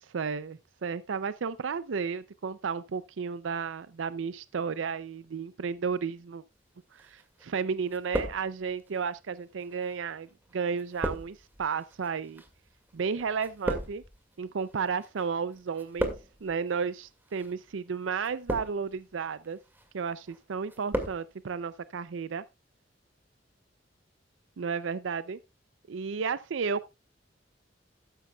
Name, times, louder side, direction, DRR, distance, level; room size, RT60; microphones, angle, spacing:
voice 1, 0.0-6.4 6.9-12.4 12.9-14.0 14.4-16.1 16.4-19.6 19.9-22.4 24.6-25.4 25.9-26.9, right 6 dB, 80° right, 0.5 m, -33 dB
sound 1, 7.0-7.6 7.9-8.9 9.6-15.3 15.5-16.5 17.2-17.5 18.2-19.0 19.4-19.9 20.3-21.2 21.5-21.6, right 1 dB, 10° right, 2.1 m, -36 dB
13.0 x 11.0 x 2.3 m
head